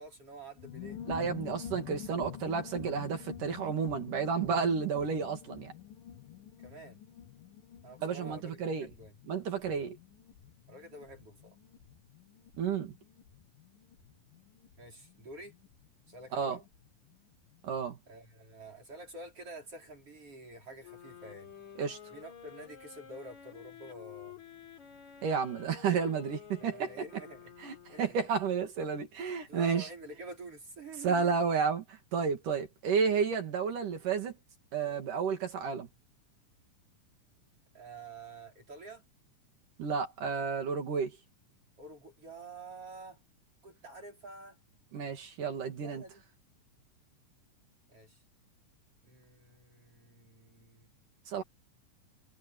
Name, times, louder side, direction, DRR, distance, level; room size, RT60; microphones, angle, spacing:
voice 1, 0.0-1.0 6.6-7.0 7.8-9.1 10.7-11.6 14.8-15.6 16.1-16.6 18.1-21.5 22.1-24.4 26.6-27.5 27.9-28.2 29.5-31.4 37.7-39.0 41.8-43.2 43.6-44.6 45.8-46.3 47.9-48.2 49.0-50.9, right 2 dB, 45° right, 6.0 m, -48 dB
sound 1, 0.6-16.9 17.1-17.2 17.4-17.9, left 10 dB, 90° left, 3.3 m, -48 dB
voice 2, 1.1-5.7 8.0-8.9 9.3-10.0 12.6-12.9 16.3-16.6 17.6-18.0 21.8-22.0 25.2-26.9 27.6-29.9 31.0-34.3 34.7-35.9 39.8-41.1 44.9-46.0 51.3-51.4, right 6 dB, 70° right, 4.0 m, -31 dB
sound 2, 20.8-28.5, left 8 dB, 60° left, 4.6 m, -51 dB
omnidirectional pair, 3.8 m